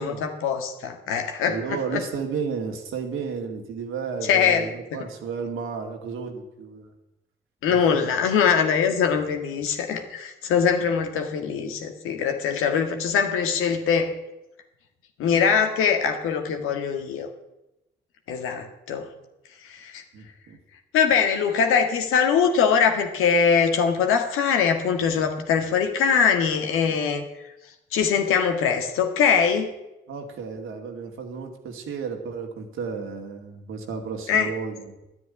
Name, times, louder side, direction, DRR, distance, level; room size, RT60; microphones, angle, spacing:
voice 1, 0.0-2.0 4.2-4.7 7.6-14.1 15.2-17.3 18.3-19.1 19.6-20.0 20.9-27.3 27.9-29.7 34.3-34.5, left 6 dB, 85° left, 5 dB, 1.8 m, -22 dB
voice 2, 1.5-6.9 7.7-8.1 10.8-10.9 20.1-20.6 30.1-35.0, right 5 dB, 75° right, 4 dB, 2.3 m, -33 dB
11.0 x 9.5 x 9.6 m, 0.93 s
hypercardioid pair, 40°, 21 cm